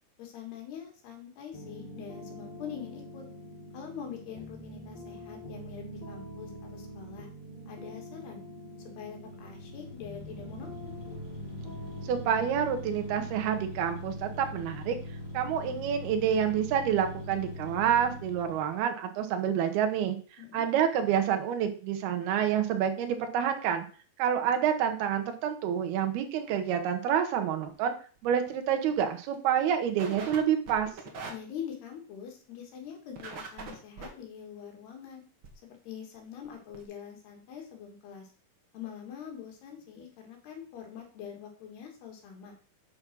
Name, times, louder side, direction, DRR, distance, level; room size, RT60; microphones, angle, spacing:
voice 1, 0.2-3.2 3.7-7.3 7.7-8.4 9.0-11.0 20.4-20.6 31.3-35.2 35.6-38.3 38.7-42.5, left 8 dB, 80° left, 3 dB, 4.2 m, -44 dB
sound 1, 1.5-12.7, equal, 35° left, 3.4 m, -45 dB
sound 2, 9.0-18.8, left 2 dB, 10° left, 3.2 m, -42 dB
voice 2, 12.1-15.0 15.3-20.2 20.5-23.9 24.2-28.0 28.2-30.9, right 8 dB, 80° right, 6 dB, 3.1 m, -28 dB
sound 3, 28.2-28.5 28.9-29.0 29.3-29.4 30.0-30.4 30.7-31.3 33.2-34.1 35.4-35.5 36.2-36.3 36.4-36.5 36.7-36.8, right 4 dB, 45° right, 1.8 m, -41 dB
8.5 x 6.1 x 6.1 m, 0.40 s
omnidirectional pair, 4.5 m